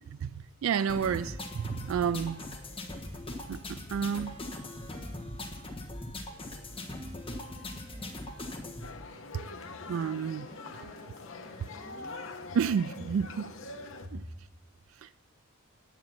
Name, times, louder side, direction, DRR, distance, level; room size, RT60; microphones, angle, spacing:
voice 1, 0.6-2.4 3.5-3.6 3.9-4.3 9.9-10.4 12.5-13.4 14.1-14.2, right 7 dB, 70° right, 0.3 m, -29 dB
sound 1, 0.9-8.9, left 1 dB, 25° left, 1.4 m, -40 dB
voice 2, 7.3-8.7 9.0-12.1 12.4-12.6 14.0-14.2, left 1 dB, ahead, 3.2 m, -52 dB
sound 2, 8.8-14.1, left 3 dB, 65° left, 1.0 m, -44 dB
10.5 x 8.6 x 5.7 m
head